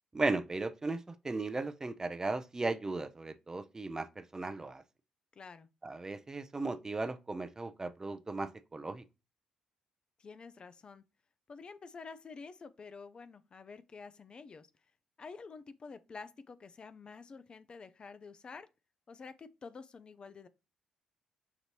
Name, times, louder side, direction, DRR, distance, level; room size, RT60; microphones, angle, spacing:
voice 1, 0.1-4.8 5.8-9.0, right 3 dB, 25° right, 0.5 m, -36 dB
voice 2, 5.4-5.7 10.2-11.0 11.5-14.7 15.2-18.7 19.1-20.5, left 4 dB, 40° left, 0.5 m, -49 dB
5.9 x 2.6 x 3.0 m
hypercardioid pair, 45°, 2 cm